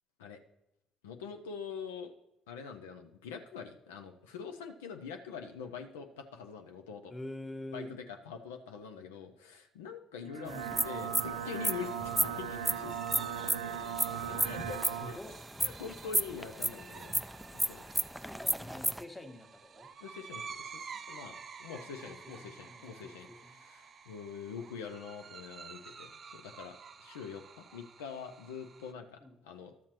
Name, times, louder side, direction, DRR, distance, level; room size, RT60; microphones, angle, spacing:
voice 1, 1.0-2.1 2.5-7.1 7.7-10.5 10.8-13.0 13.5-15.2 15.6-17.2 17.5-17.8 20.0-29.7, left 6 dB, 80° left, 6 dB, 0.5 m, -45 dB
voice 2, 7.1-8.0 10.2-10.8 14.8-15.4 18.2-19.9 21.9-23.6 29.2-29.4, left 1 dB, 15° left, 5 dB, 1.2 m, -47 dB
sound 1, 10.2-15.2, right 8 dB, 90° right, 0.4 m, -38 dB
sound 2, 10.5-19.0, equal, ahead, 0.3 m, -33 dB
sound 3, 11.8-28.9, right 6 dB, 45° right, 0.6 m, -51 dB
12.5 x 7.2 x 2.9 m, 0.86 s
hypercardioid pair, 55°, 0 cm